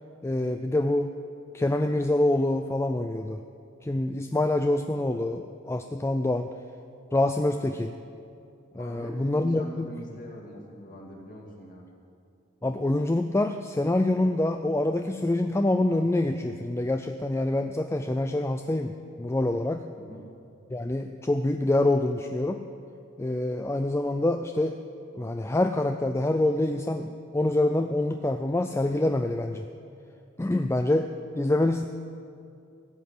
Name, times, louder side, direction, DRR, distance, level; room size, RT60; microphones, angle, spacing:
voice 1, 0.2-1.1 1.5-3.4 3.8-6.5 7.1-8.0 8.7-9.9 12.6-19.8 20.7-22.6 23.2-24.8 25.1-29.6 30.4-31.1 31.3-31.8, left 1 dB, 10° left, 7 dB, 0.3 m, -26 dB
voice 2, 8.8-11.9 20.0-20.3, equal, 40° left, -2 dB, 2.5 m, -42 dB
15.5 x 8.0 x 9.8 m, 2.5 s
head